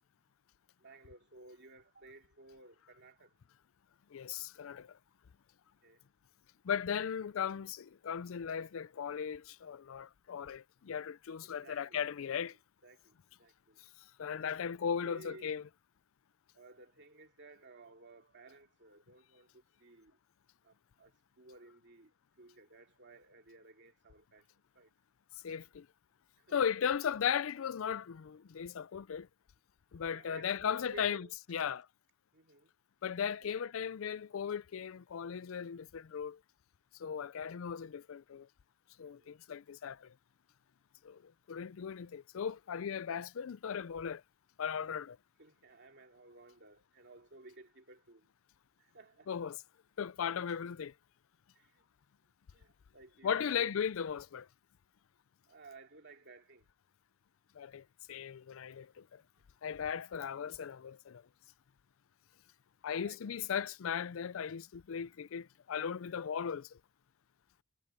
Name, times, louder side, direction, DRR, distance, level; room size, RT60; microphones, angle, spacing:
voice 1, 0.8-3.4 5.8-6.1 11.4-13.8 14.6-14.7 15.0-15.5 16.5-20.2 20.6-24.5 24.7-24.9 26.3-26.5 30.1-31.3 32.3-32.7 33.4-33.6 39.0-39.3 45.4-48.3 48.8-49.3 51.5-51.9 52.5-53.7 55.5-56.7 59.2-59.3 62.9-63.4, right 2 dB, 60° right, 2.8 m, -57 dB
voice 2, 4.1-5.0 6.6-12.5 14.2-15.6 25.4-25.9 26.5-29.3 29.9-31.8 33.0-36.4 37.0-38.5 39.0-40.1 41.0-44.2 44.6-45.2 49.3-49.6 50.0-50.9 53.2-54.5 57.5-59.2 59.6-61.2 62.8-66.8, left 7 dB, 70° left, 0.4 m, -37 dB
head